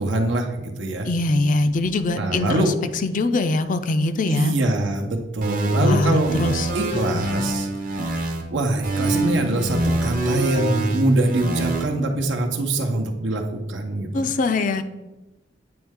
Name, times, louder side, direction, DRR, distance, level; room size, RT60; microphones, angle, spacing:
voice 1, 0.0-1.1 2.2-2.7 4.2-6.4 6.7-7.7 8.0-8.2 8.5-14.3, right 2 dB, 85° right, 3 dB, 0.8 m, -24 dB
voice 2, 1.1-2.7 3.0-4.5 5.7-6.7 14.1-14.8, left 2 dB, 45° left, 10 dB, 0.4 m, -22 dB
sound 1, 5.4-8.4 8.8-11.8, right 2 dB, 45° right, 0.8 m, -24 dB
8.7 x 3.2 x 3.6 m, 1.1 s
head